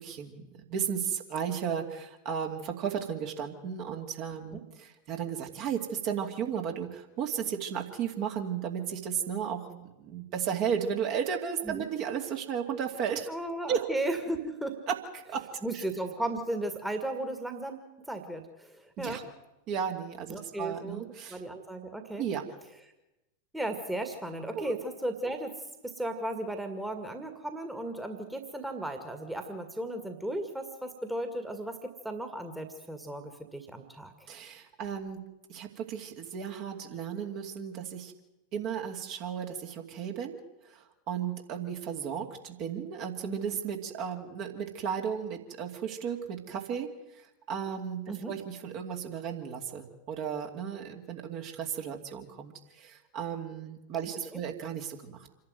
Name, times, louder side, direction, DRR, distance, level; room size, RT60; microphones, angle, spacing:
voice 1, 0.0-13.3 13.7-13.9 14.9-15.8 19.0-19.2 19.7-21.4 22.2-22.4 24.5-24.7 34.3-38.1 38.5-40.4 40.6-55.3, right 7 dB, 40° right, 2 dB, 2.5 m, -34 dB
voice 2, 13.3-14.8 15.6-19.2 20.3-22.3 23.5-25.6 25.8-34.1 48.1-48.3 54.3-54.4, right 1 dB, 5° right, 6 dB, 2.0 m, -35 dB
27.0 x 11.5 x 9.3 m, 0.96 s
figure-of-eight pair, 90°, 0 cm